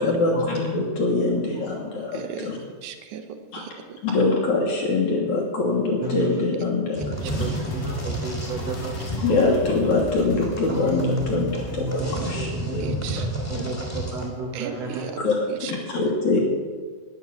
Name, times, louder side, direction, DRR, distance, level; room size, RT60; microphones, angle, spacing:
voice 1, 0.0-2.6 3.5-3.6 4.0-7.5 9.2-12.9 13.6-13.8 15.2-15.4 15.9-16.4, left 3 dB, 60° left, -1 dB, 2.2 m, -24 dB
voice 2, 1.2-1.6 2.1-2.2 6.0-6.3 7.2-9.3 10.7-15.1, right 2 dB, 60° right, -1 dB, 1.8 m, -32 dB
voice 3, 2.1-2.5 2.8-4.0 7.0-7.1 12.8-13.3 14.5-15.7, right 7 dB, 75° right, 7 dB, 1.8 m, -36 dB
sound 1, 6.9-14.3, right 1 dB, 5° left, 1.7 m, -32 dB
sound 2, 7.2-12.3, left 1 dB, 80° left, 4.7 m, -38 dB
11.0 x 9.8 x 7.1 m, 1.6 s
omnidirectional pair, 4.8 m